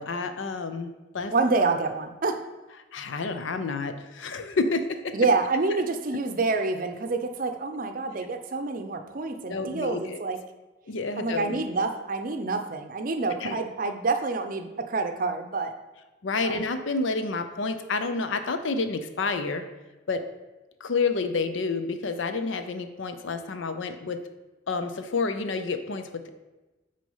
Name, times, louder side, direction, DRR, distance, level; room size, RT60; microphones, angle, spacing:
voice 1, 0.0-1.3 2.9-5.1 9.5-10.2 10.9-11.6 13.4-13.6 16.2-19.6 20.1-20.2 20.8-24.2 24.7-26.3, left 4 dB, 80° left, 9 dB, 0.6 m, -29 dB
voice 2, 1.3-2.4 5.1-10.4 11.2-15.7 16.4-16.6, right 3 dB, 45° right, 7 dB, 0.5 m, -27 dB
6.2 x 4.2 x 5.5 m, 1.1 s
head